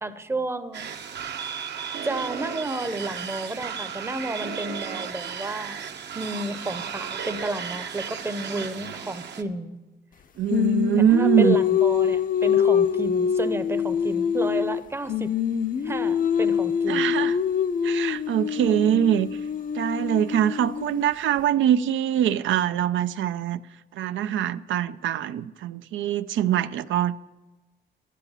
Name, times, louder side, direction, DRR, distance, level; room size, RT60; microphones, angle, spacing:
voice 1, 0.0-0.9 2.0-5.8 6.1-9.8 11.0-15.3 15.8-17.2 18.6-19.1, right 2 dB, 15° right, 0.6 m, -32 dB
sound 1, 0.7-9.4, right 7 dB, 65° right, 0.9 m, -34 dB
voice 2, 10.4-11.6 16.9-17.4 17.8-19.3 19.7-23.6 23.9-27.2, right 10 dB, 90° right, 0.4 m, -23 dB
Singing, 10.5-14.8 15.1-21.1, left 8 dB, 45° left, 0.6 m, -24 dB
11.5 x 10.0 x 5.6 m
cardioid pair, 120°, 19 cm